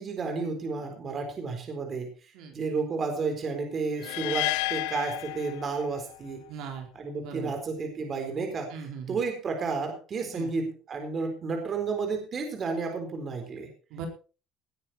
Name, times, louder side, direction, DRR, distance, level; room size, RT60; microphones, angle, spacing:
voice 1, 0.0-2.1 2.5-6.4 6.9-13.7, right 4 dB, 30° right, 4 dB, 4.0 m, -32 dB
sound 1, 4.0-6.2, left 20 dB, 85° left, 0.6 m, -31 dB
voice 2, 6.5-6.9 7.2-7.5 8.7-9.2 10.3-10.5 13.9-14.1, right 7 dB, 65° right, 3 dB, 4.1 m, -38 dB
18.5 x 9.9 x 4.3 m, 0.36 s
cardioid pair, 150°, 0 cm